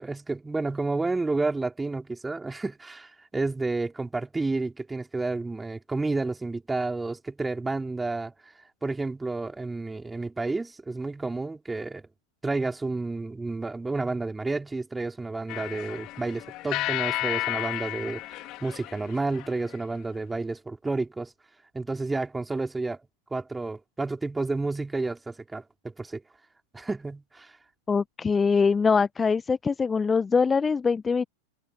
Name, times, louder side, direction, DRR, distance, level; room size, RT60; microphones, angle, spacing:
voice 1, 0.0-8.3 8.8-12.1 12.4-21.3 21.7-23.0 23.3-26.2 26.7-27.6, right 3 dB, 10° right, 4.1 m, -30 dB
Campanes Immaculada, 15.5-19.8, left 18 dB, 40° left, 3.3 m, -32 dB
voice 2, 27.9-31.3, left 5 dB, 15° left, 1.0 m, -23 dB
figure-of-eight pair, 90°, 0 cm